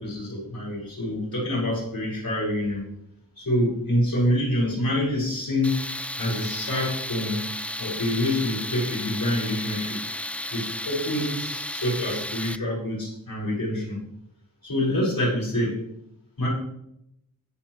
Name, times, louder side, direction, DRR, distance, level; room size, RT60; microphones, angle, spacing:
voice 1, 0.0-2.8 3.4-5.9 6.2-7.5 7.8-10.0 10.5-14.0 14.6-15.8 16.4-16.5, left 1 dB, 75° left, -5 dB, 5.7 m, -26 dB
Tools, 5.6-12.6, left 1 dB, 5° left, 0.4 m, -33 dB
21.5 x 7.4 x 3.2 m, 0.79 s
wide cardioid pair, 60°, 34 cm